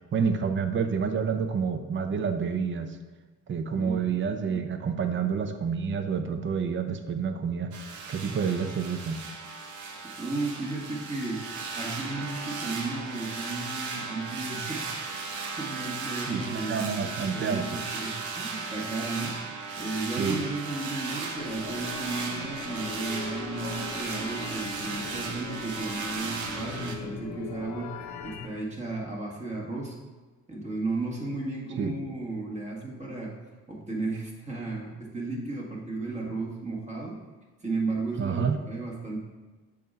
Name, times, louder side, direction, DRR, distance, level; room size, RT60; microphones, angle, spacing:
voice 1, 0.1-3.0 3.5-7.7 8.1-9.2 16.3-17.8 20.2-20.4 31.8-32.0 38.2-38.6, right 6 dB, 40° right, 8 dB, 0.6 m, -28 dB
sound 1, 7.7-27.0, right 4 dB, 75° right, 0.8 m, -36 dB
voice 2, 9.8-19.3 19.8-27.9 28.2-30.0 30.5-33.3 33.7-37.2 37.6-39.2, right 3 dB, 25° right, -3 dB, 1.6 m, -34 dB
sound 2, 21.4-28.5, left 4 dB, 70° left, 0.7 m, -40 dB
6.6 x 2.6 x 5.5 m, 1.3 s
cardioid pair, 90°, 30 cm